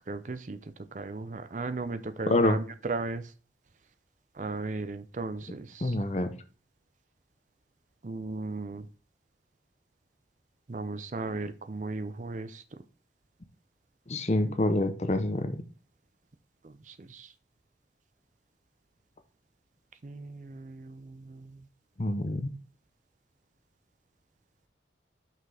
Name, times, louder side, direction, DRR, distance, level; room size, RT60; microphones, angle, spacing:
voice 1, 0.1-0.6 0.9-3.3 4.4-6.0 8.0-8.9 10.7-12.6 16.6-17.3 20.0-21.6, right 3 dB, 45° right, 11 dB, 0.5 m, -36 dB
voice 2, 2.3-2.6 5.8-6.3 14.1-15.6 22.0-22.5, left 1 dB, 40° left, 9 dB, 0.7 m, -26 dB
5.9 x 5.8 x 3.4 m, 0.37 s
head